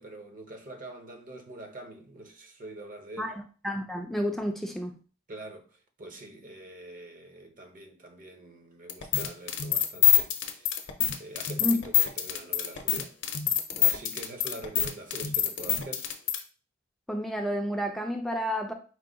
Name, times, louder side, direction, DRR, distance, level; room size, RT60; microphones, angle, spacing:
voice 1, 0.0-3.4 5.3-5.7 6.0-10.9 11.2-13.1 13.8-16.1, right 1 dB, 45° right, 0.7 m, -45 dB
voice 2, 3.2-4.9 11.6-11.8 17.1-18.7, equal, ahead, 0.4 m, -30 dB
sound 1, 8.9-16.4, left 10 dB, 60° left, 0.6 m, -25 dB
4.5 x 2.1 x 3.8 m
head